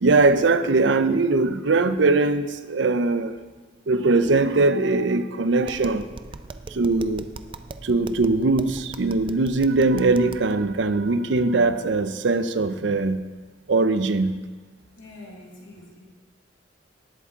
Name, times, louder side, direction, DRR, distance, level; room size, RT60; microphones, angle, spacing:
voice 1, 0.0-3.4 3.9-6.1 6.7-7.3 7.8-13.2 13.7-14.3, right 3 dB, 75° right, 12 dB, 0.6 m, -21 dB
Tap, 5.6-10.5, right 3 dB, 25° right, 0.4 m, -40 dB
voice 2, 14.9-16.0, left 2 dB, 90° left, -3 dB, 3.1 m, -44 dB
18.0 x 8.4 x 3.7 m, 1.4 s
head